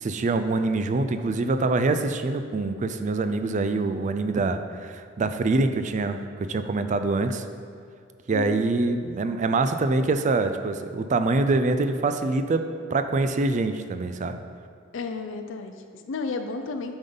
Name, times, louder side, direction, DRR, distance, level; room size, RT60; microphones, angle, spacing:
voice 1, 0.0-7.4 8.3-12.6 12.9-14.4, right 3 dB, 40° right, 9 dB, 0.4 m, -25 dB
voice 2, 8.3-8.7 14.9-16.9, left 4 dB, 70° left, 6 dB, 0.5 m, -33 dB
8.8 x 5.4 x 3.9 m, 2.3 s
head